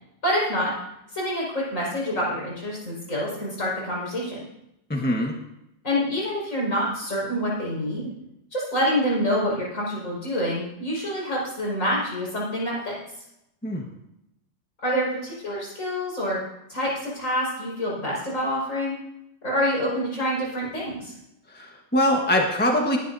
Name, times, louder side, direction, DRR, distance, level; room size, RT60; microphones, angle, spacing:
voice 1, 0.2-0.7 1.1-4.4 5.8-8.1 8.5-12.9 14.8-16.4 16.7-19.0 19.4-21.1, equal, 50° left, -5 dB, 5.9 m, -27 dB
voice 2, 4.9-5.4 13.6-13.8 21.5-23.0, left 1 dB, 5° left, 1 dB, 1.2 m, -23 dB
19.5 x 12.0 x 2.7 m, 0.85 s
omnidirectional pair, 1.7 m